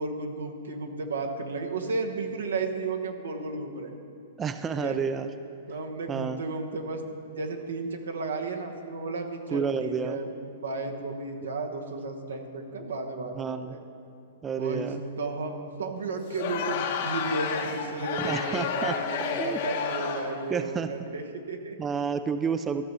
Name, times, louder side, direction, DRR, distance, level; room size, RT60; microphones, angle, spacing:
voice 1, 0.0-4.0 4.7-5.0 5.7-7.0 7.3-10.3 10.6-13.8 14.6-14.9 15.2-21.8, right 3 dB, 90° right, 3 dB, 1.2 m, -33 dB
voice 2, 4.4-5.3 6.1-6.4 9.5-10.2 13.4-13.8 14.4-15.0 18.2-18.9 19.4-19.6 20.5-20.9 21.8-22.9, right 6 dB, 20° right, 10 dB, 0.4 m, -30 dB
Crowd, 16.3-20.4, left 7 dB, 60° left, 1.0 m, -31 dB
14.0 x 6.2 x 5.6 m, 2.5 s
hypercardioid pair, 135°, 0 cm